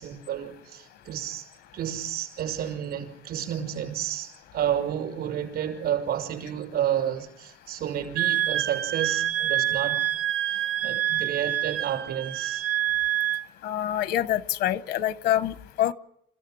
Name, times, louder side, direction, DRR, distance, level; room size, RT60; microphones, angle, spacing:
voice 1, 0.0-1.4 1.7-10.0 10.5-12.6, right 10 dB, 70° right, 6.0 m, -31 dB
Wind instrument woodwind instrument, 8.2-13.5, right 13 dB, 90° right, 0.9 m, -27 dB
voice 2, 13.6-15.9, left 12 dB, 75° left, 1.1 m, -26 dB
27.5 x 15.5 x 7.8 m
cardioid pair, 110°, 17 cm